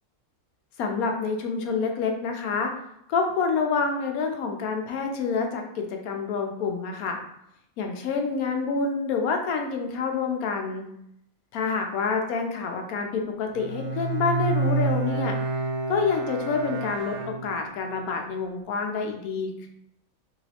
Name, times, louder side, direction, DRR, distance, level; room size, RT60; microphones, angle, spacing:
voice 1, 0.8-2.7 3.1-7.2 7.8-10.9 11.5-15.3 15.9-19.7, left 5 dB, 85° left, 3 dB, 1.0 m, -27 dB
Bowed string instrument, 13.5-17.9, right 3 dB, 80° right, 1.2 m, -29 dB
3.0 x 3.0 x 2.8 m, 0.77 s
omnidirectional pair, 1.5 m